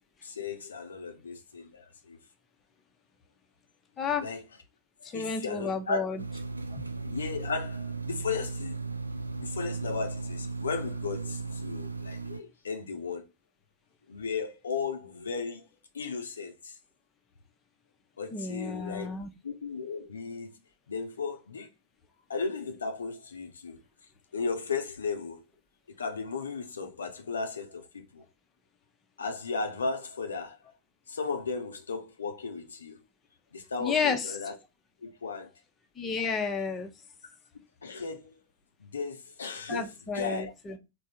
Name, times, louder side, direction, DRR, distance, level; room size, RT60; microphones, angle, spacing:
voice 1, 0.2-2.2 4.2-4.4 5.0-6.0 7.0-8.8 9.4-13.3 14.1-15.6 15.9-16.8 18.2-19.2 19.4-20.5 20.9-21.7 22.3-23.8 24.3-25.4 26.0-28.2 29.2-30.6 31.1-33.0 33.5-34.6 35.0-35.5 37.8-38.4 38.8-39.9 40.1-40.5, left 4 dB, 70° left, 0.5 m, -35 dB
voice 2, 4.0-4.3 5.0-6.2 6.7-6.8 18.3-19.3 33.8-34.3 36.0-36.9 39.7-40.8, left 5 dB, 20° left, 0.7 m, -31 dB
sound 1, 6.2-12.4, right 3 dB, 80° right, 0.3 m, -36 dB
3.5 x 2.2 x 4.2 m
figure-of-eight pair, 90°, 0 cm